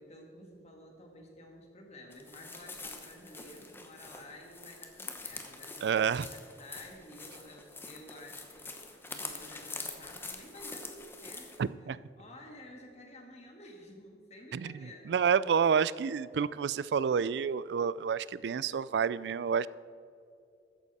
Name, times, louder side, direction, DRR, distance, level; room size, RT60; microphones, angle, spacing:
voice 1, 0.0-15.1, left 1 dB, 40° left, 2 dB, 1.8 m, -52 dB
sound 1, 2.1-11.6, left 3 dB, 15° left, 1.0 m, -45 dB
voice 2, 5.8-6.3 11.6-12.0 14.5-14.7 15.1-19.7, right 6 dB, 70° right, 18 dB, 0.3 m, -29 dB
13.5 x 9.8 x 4.2 m, 2.5 s
head